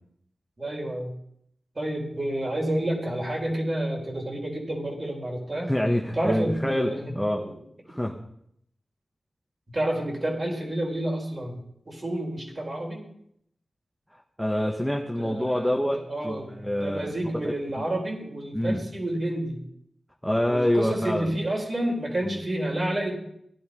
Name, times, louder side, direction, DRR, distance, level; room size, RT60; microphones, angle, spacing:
voice 1, 0.6-1.1 1.7-5.7 6.1-7.1 7.4-7.5 9.7-11.6 11.9-13.0 15.2-15.8 16.1-19.6 20.5-23.1, right 1 dB, 40° right, 0 dB, 4.6 m, -29 dB
voice 2, 5.7-7.4 7.9-8.1 14.4-17.1 18.5-18.8 20.2-21.3 22.2-22.4, left 1 dB, 5° left, 1 dB, 1.6 m, -26 dB
16.0 x 11.0 x 5.5 m, 0.70 s
wide cardioid pair, 65°, 0 cm